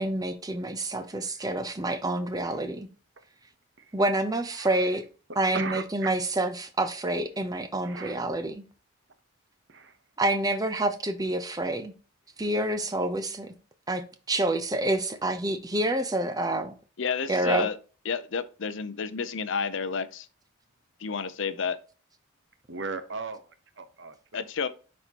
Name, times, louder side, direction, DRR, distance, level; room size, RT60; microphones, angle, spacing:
voice 1, 0.0-2.9 3.9-5.1 5.4-8.6 10.2-11.9 12.4-13.5 13.9-16.7 17.3-17.7, right 1 dB, 15° right, 0.6 m, -28 dB
voice 2, 1.1-1.5 2.4-2.6 3.8-4.0 4.5-5.0 5.5-6.2 7.8-8.2 9.7-10.0 22.7-24.4, right 4 dB, 55° right, 0.9 m, -38 dB
voice 3, 17.0-17.7 18.1-20.3 21.0-21.8 24.3-24.7, left 5 dB, 60° left, 0.6 m, -30 dB
11.0 x 4.2 x 2.9 m
head